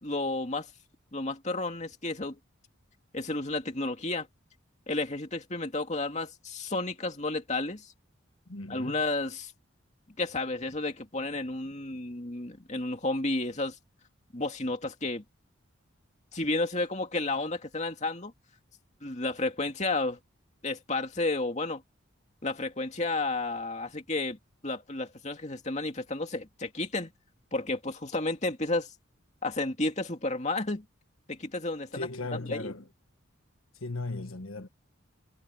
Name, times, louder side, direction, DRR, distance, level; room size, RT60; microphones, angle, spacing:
voice 1, 0.0-0.7 1.1-2.4 3.1-4.3 4.9-7.9 8.7-9.5 10.2-13.8 14.3-15.2 16.3-18.3 19.0-20.2 20.6-21.8 22.4-24.4 24.6-27.1 27.5-28.9 29.4-30.8 31.3-32.7, left 2 dB, 35° left, 2.5 m, -32 dB
voice 2, 8.5-9.0 31.9-32.9 33.8-34.7, left 2 dB, 85° left, 1.5 m, -37 dB
head